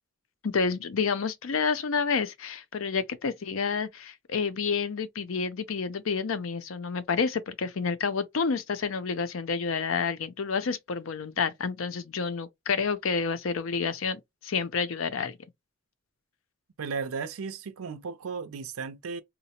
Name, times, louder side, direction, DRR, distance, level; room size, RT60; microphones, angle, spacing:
voice 1, 0.4-15.4, left 5 dB, 70° left, 0.5 m, -29 dB
voice 2, 16.8-19.2, right 5 dB, 90° right, 0.5 m, -35 dB
3.8 x 2.0 x 2.9 m
head